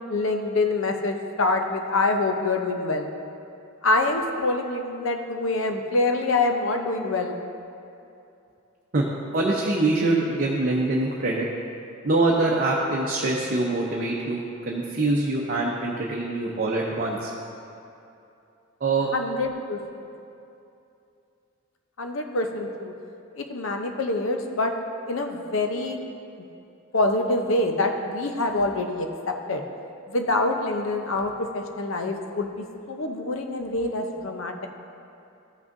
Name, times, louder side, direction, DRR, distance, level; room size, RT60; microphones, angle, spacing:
voice 1, 0.1-3.1 3.8-7.4 19.1-20.1 22.0-22.9 23.3-24.7 25.1-26.0 26.9-29.6 30.1-34.7, left 2 dB, 65° left, 4 dB, 0.7 m, -26 dB
voice 2, 9.3-11.5 12.0-14.4 14.7-17.3 18.8-19.1, right 2 dB, 45° right, -3 dB, 0.7 m, -24 dB
13.5 x 6.1 x 2.6 m, 2.7 s
head